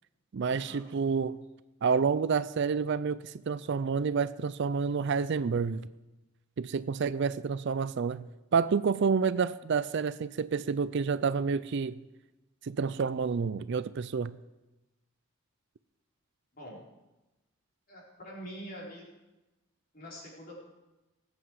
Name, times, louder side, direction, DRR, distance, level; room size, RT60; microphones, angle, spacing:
voice 1, 0.3-1.4 1.8-5.8 6.6-8.3 8.5-12.0 12.6-14.4, right 5 dB, 55° right, 0.4 m, -29 dB
voice 2, 17.9-19.0 19.9-20.6, equal, 40° left, 4.2 m, -45 dB
19.5 x 8.1 x 4.8 m
head